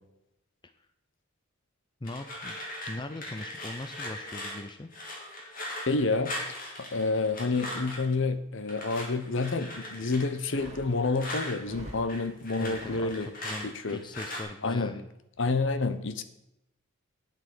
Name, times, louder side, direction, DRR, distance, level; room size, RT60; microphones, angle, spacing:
sound 1, 2.0-8.1 8.7-11.6 11.9-14.4, left 1 dB, 40° left, 2.8 m, -39 dB
voice 1, 2.0-2.6 2.9-4.9 12.6-15.1, left 2 dB, 20° left, 9 dB, 0.5 m, -40 dB
voice 2, 5.9-6.3 6.8-13.3 13.8-14.0 14.6-14.9 15.4-16.2, left 3 dB, 60° left, 12 dB, 0.8 m, -28 dB
sound 2, 10.4-13.6, right 1 dB, 30° right, 2.0 m, -47 dB
9.4 x 8.1 x 6.1 m, 0.85 s
head